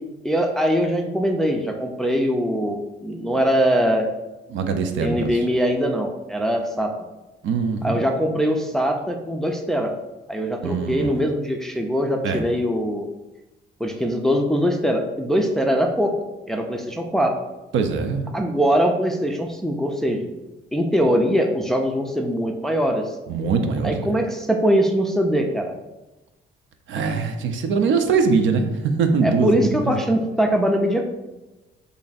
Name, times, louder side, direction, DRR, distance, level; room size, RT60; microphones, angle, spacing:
voice 1, 0.2-4.1 5.0-6.9 7.8-9.9 10.3-13.1 13.8-16.1 16.5-17.4 18.3-20.3 20.7-23.2 23.8-25.7 29.2-31.0, equal, ahead, 3 dB, 0.4 m, -22 dB
voice 2, 4.5-5.3 7.4-8.0 10.6-11.2 12.2-12.4 17.7-18.3 23.3-24.1 26.9-30.0, right 5 dB, 75° right, 6 dB, 0.5 m, -22 dB
3.2 x 2.6 x 3.9 m, 1.1 s
cardioid pair, 90°, 20 cm